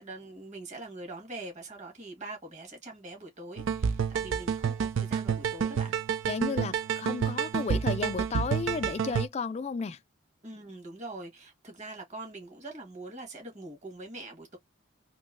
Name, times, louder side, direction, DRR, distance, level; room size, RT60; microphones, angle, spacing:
voice 1, 0.0-5.9 10.4-14.6, right 2 dB, 35° right, 1.3 m, -43 dB
sound 1, 3.6-9.3, right 7 dB, 90° right, 0.4 m, -29 dB
voice 2, 6.3-10.0, left 4 dB, 35° left, 0.3 m, -33 dB
2.9 x 2.7 x 2.5 m
head